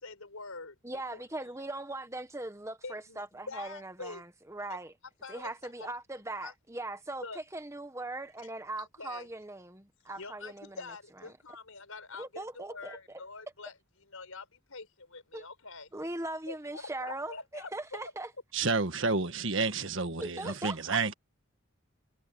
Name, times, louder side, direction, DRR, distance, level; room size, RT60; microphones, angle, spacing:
voice 1, 0.0-0.8 1.1-1.2 2.8-4.2 4.7-4.8 5.2-5.9 6.4-6.5 7.2-7.4 8.8-9.3 10.2-13.7 14.1-15.9 16.5-18.1, left 3 dB, 90° left, 5.4 m, -45 dB
voice 2, 0.8-4.9 5.3-10.8 11.2-11.4 12.2-13.2 15.3-15.4 15.9-18.3 20.2-21.0, right 2 dB, 15° right, 1.4 m, -40 dB
voice 3, 18.5-21.1, right 4 dB, 65° right, 1.6 m, -30 dB
head